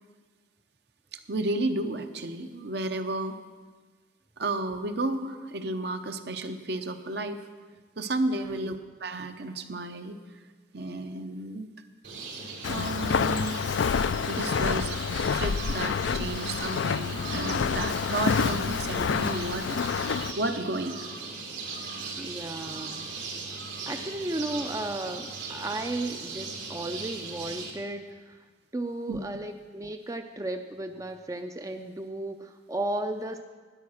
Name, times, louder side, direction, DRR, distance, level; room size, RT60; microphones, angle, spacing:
voice 1, 1.1-3.4 4.4-7.4 8.0-10.2 10.7-11.7 12.7-13.6 14.3-19.8 20.1-21.0 22.0-22.1 29.1-29.2, right 2 dB, 60° right, 8 dB, 0.8 m, -32 dB
voice 2, 8.3-8.7 22.2-23.1 23.9-28.5 28.7-33.4, right 1 dB, 15° right, 6 dB, 0.4 m, -34 dB
sound 1, 12.0-27.7, right 4 dB, 85° right, 3.1 m, -38 dB
Walk footsteps, 12.6-20.3, left 6 dB, 80° left, 0.4 m, -28 dB
13.0 x 9.5 x 6.4 m, 1.4 s
head